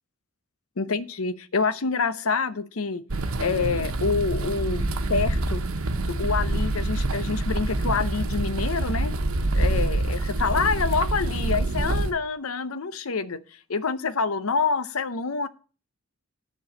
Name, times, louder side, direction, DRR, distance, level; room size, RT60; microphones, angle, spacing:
voice 1, 0.8-3.0 3.4-4.8 5.1-5.6 6.0-9.1 9.5-13.4 13.7-15.5, left 4 dB, 85° left, 14 dB, 0.7 m, -27 dB
sound 1, 3.1-12.1, right 2 dB, 85° right, 1.1 m, -26 dB
10.5 x 4.6 x 8.0 m, 0.38 s
head